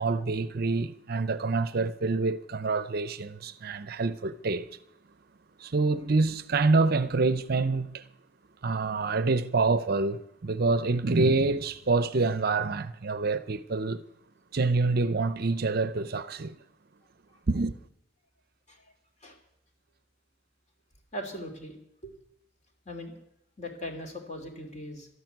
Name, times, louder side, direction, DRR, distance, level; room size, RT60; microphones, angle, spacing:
voice 1, 0.0-4.7 5.6-8.0 8.6-14.0 14.5-16.5 17.5-17.7, right 3 dB, 50° right, 0.6 m, -26 dB
voice 2, 21.1-21.7 22.0-22.1 22.8-23.2 23.6-25.1, equal, 35° left, 2.9 m, -39 dB
13.0 x 10.5 x 9.3 m
head